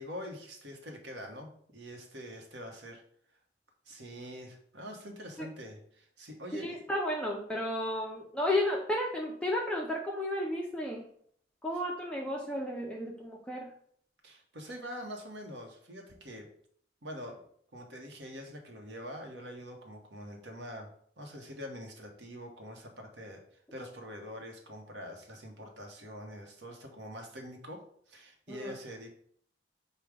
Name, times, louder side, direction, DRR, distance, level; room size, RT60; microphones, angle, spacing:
voice 1, 0.0-3.0 3.9-6.8 14.2-16.5 17.0-17.4 17.7-20.9 21.2-23.4 23.7-29.1, equal, 75° right, 3 dB, 0.9 m, -45 dB
voice 2, 6.6-11.0 11.6-13.7 28.5-28.7, left 1 dB, 5° left, -1 dB, 0.4 m, -33 dB
5.1 x 2.2 x 4.7 m, 0.62 s
head